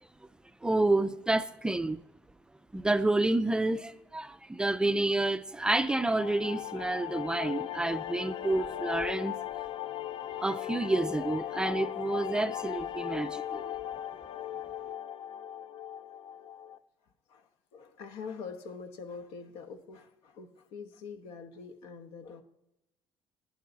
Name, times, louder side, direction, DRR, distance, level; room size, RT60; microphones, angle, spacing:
voice 1, 0.6-2.0 2.7-9.4 10.4-13.7, right 2 dB, 10° right, 0.4 m, -29 dB
sound 1, 5.7-16.8, left 12 dB, 65° left, 0.5 m, -38 dB
voice 2, 17.3-22.4, left 5 dB, 90° left, 1.2 m, -44 dB
11.5 x 11.0 x 4.0 m
cardioid pair, 150°, 10 cm